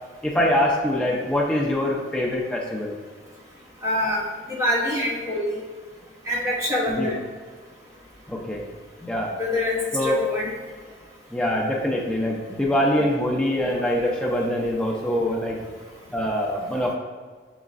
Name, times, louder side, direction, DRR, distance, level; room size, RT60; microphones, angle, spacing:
voice 1, 0.2-2.9 6.9-7.2 8.3-8.6 9.0-9.3 9.9-10.2 11.3-15.6 16.1-16.9, left 1 dB, 5° left, -3 dB, 0.4 m, -24 dB
voice 2, 3.8-4.2 4.5-5.6 6.3-7.2 9.4-10.5, left 1 dB, 15° right, -5 dB, 0.8 m, -25 dB
6.5 x 3.1 x 2.4 m, 1.5 s
head